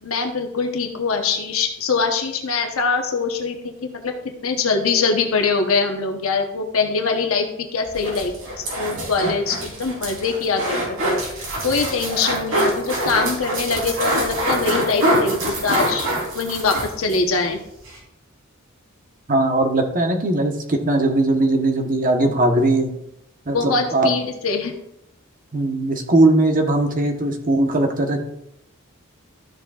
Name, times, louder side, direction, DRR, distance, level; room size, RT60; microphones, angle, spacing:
voice 1, 0.0-4.1 4.4-11.2 11.6-16.1 16.3-17.6 23.5-24.7, left 4 dB, 80° left, 3 dB, 1.0 m, -23 dB
sound 1, 7.9-17.2 17.5-17.6 17.8-18.0, right 1 dB, 75° right, 3.4 m, -24 dB
voice 2, 19.3-22.9 23.5-24.1 25.5-28.2, right 2 dB, 40° right, 4 dB, 1.1 m, -19 dB
13.0 x 6.9 x 2.4 m, 0.80 s
head